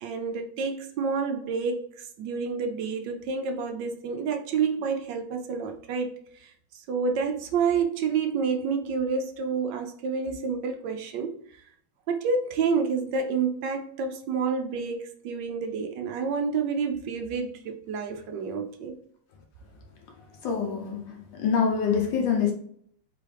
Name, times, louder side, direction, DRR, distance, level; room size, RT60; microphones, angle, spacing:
voice 1, 0.0-1.9 2.2-11.4 12.1-19.0, right 5 dB, 70° right, 1.1 m, -29 dB
voice 2, 20.4-22.5, left 6 dB, 70° left, 1.2 m, -25 dB
3.9 x 3.7 x 3.3 m
omnidirectional pair, 2.4 m